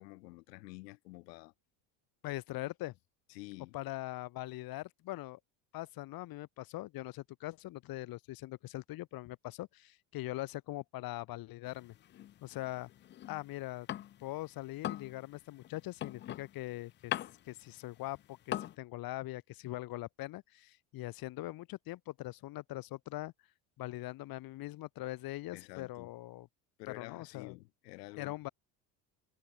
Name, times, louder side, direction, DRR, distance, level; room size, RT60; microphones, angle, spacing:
voice 1, 0.0-1.5 3.3-3.8 25.5-26.1 26.8-28.5, left 23 dB, 85° left, 0.8 m, -49 dB
voice 2, 2.2-2.9 3.7-5.4 5.7-11.9 12.4-12.9 13.2-13.9 14.2-17.1 17.5-23.3 23.8-26.5 26.9-27.6 28.2-28.5, left 17 dB, 50° left, 0.8 m, -42 dB
sound 1, 11.7-14.4 14.7-18.7, left 12 dB, 25° left, 0.3 m, -41 dB
hypercardioid pair, 75°, 48 cm